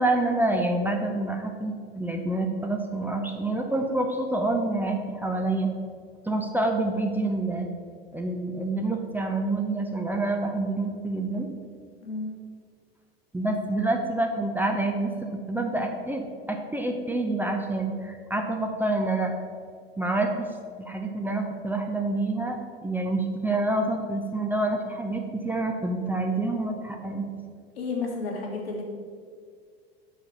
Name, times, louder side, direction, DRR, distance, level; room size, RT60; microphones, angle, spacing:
voice 1, 0.0-5.7 6.2-7.7 8.1-11.5 13.3-19.3 20.0-20.5 20.8-27.3, right 2 dB, 5° right, 2 dB, 0.7 m, -27 dB
voice 2, 27.8-28.8, left 4 dB, 75° left, 0 dB, 1.7 m, -31 dB
6.4 x 5.0 x 5.3 m, 2.1 s
hypercardioid pair, 85°, 30 cm